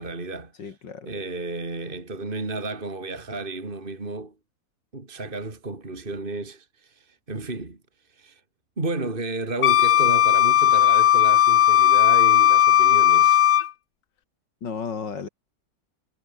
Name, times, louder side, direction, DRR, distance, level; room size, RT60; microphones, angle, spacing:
voice 1, 0.0-0.7 1.0-4.3 4.9-7.8 8.1-8.4 8.8-13.4, right 2 dB, 30° right, 3.3 m, -32 dB
voice 2, 0.6-1.1 14.6-15.3, left 6 dB, 80° left, 2.9 m, -33 dB
Wind instrument woodwind instrument, 9.6-13.7, left 11 dB, 60° left, 1.1 m, -17 dB
omnidirectional pair, 1.9 m